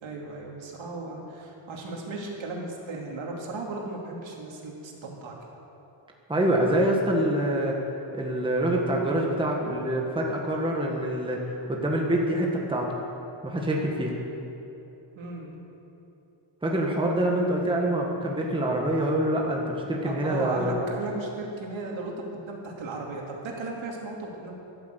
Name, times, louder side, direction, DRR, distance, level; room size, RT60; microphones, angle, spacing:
voice 1, 0.0-5.3 15.1-15.5 20.0-24.6, right 2 dB, 65° right, -1 dB, 2.8 m, -36 dB
voice 2, 6.3-7.8 8.1-11.4 11.7-13.0 13.4-14.1 16.6-20.8, right 1 dB, 10° right, -1 dB, 1.5 m, -25 dB
13.5 x 12.0 x 8.1 m, 3.0 s
wide cardioid pair, 170°, 49 cm